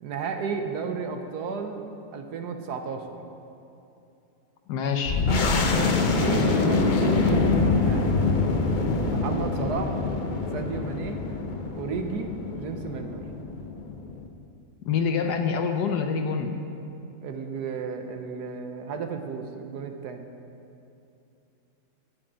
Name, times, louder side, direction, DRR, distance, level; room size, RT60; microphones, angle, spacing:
voice 1, 0.0-1.8 2.1-3.2 5.3-5.5 6.1-8.1 9.1-10.0 10.5-11.2 11.7-13.2 17.2-20.3, right 5 dB, 75° right, 5 dB, 1.4 m, -33 dB
voice 2, 4.7-5.2 14.9-16.5, left 6 dB, 75° left, 5 dB, 1.3 m, -26 dB
sound 1, 5.1-14.3, left 3 dB, 50° left, 0.5 m, -25 dB
9.0 x 7.4 x 8.8 m, 2.7 s
omnidirectional pair, 1.8 m